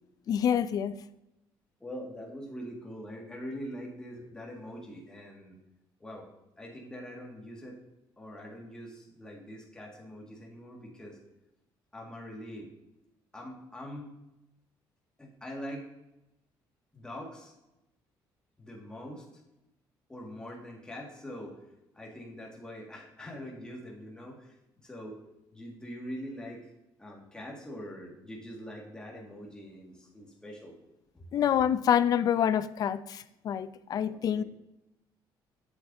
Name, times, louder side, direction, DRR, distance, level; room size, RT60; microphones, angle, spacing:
voice 1, 0.3-1.0 31.3-34.4, left 9 dB, 50° left, 0.4 m, -27 dB
voice 2, 1.8-5.6 6.0-6.3 6.6-7.8 8.2-11.2 11.9-12.7 13.3-14.2 15.2-15.9 16.9-17.5 18.6-19.2 20.1-21.6 21.9-24.6 24.8-25.2 25.5-26.6 27.0-30.7 31.1-31.3 34.0-34.4, equal, 10° left, 1.8 m, -43 dB
7.9 x 7.8 x 2.6 m
cardioid pair, 140°, 8 cm